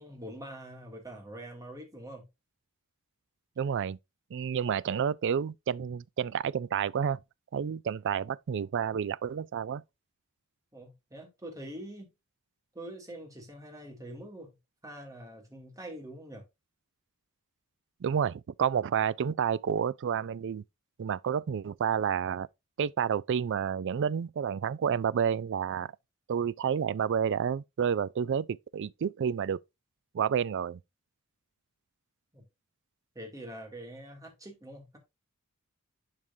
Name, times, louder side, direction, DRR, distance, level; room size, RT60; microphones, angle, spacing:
voice 1, 0.0-2.3 10.7-12.1 12.7-14.5 14.8-16.4 32.3-32.5 33.1-35.0, right 1 dB, 15° right, 2.6 m, -44 dB
voice 2, 3.6-4.0 4.3-7.2 7.5-9.8 18.0-20.6 21.0-22.5 22.8-25.9 26.3-29.6 30.1-30.8, right 7 dB, 55° right, 0.3 m, -30 dB
11.0 x 4.9 x 2.7 m
head